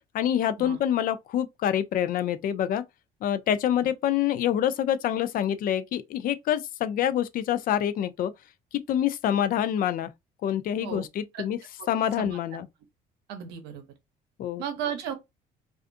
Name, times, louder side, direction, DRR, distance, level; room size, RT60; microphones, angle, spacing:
voice 1, 0.1-2.8 3.2-8.3 8.7-10.1 10.4-11.6 11.9-12.7 14.4-14.6, left 10 dB, 55° left, 0.4 m, -26 dB
voice 2, 13.3-13.8 14.6-15.1, right 8 dB, 90° right, 0.7 m, -34 dB
2.5 x 2.4 x 2.4 m
cardioid pair, 110°, 17 cm